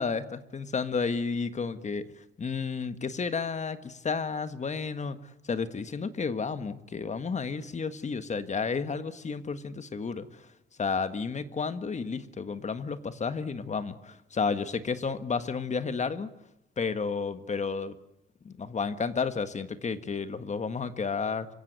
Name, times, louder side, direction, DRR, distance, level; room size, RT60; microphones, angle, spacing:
voice 1, 0.0-2.0 2.4-5.2 5.5-10.5 10.8-16.3 16.8-18.0 18.4-21.5, left 5 dB, 35° left, 12 dB, 1.6 m, -32 dB
26.0 x 16.0 x 9.5 m, 0.86 s
cardioid pair, 90°, 20 cm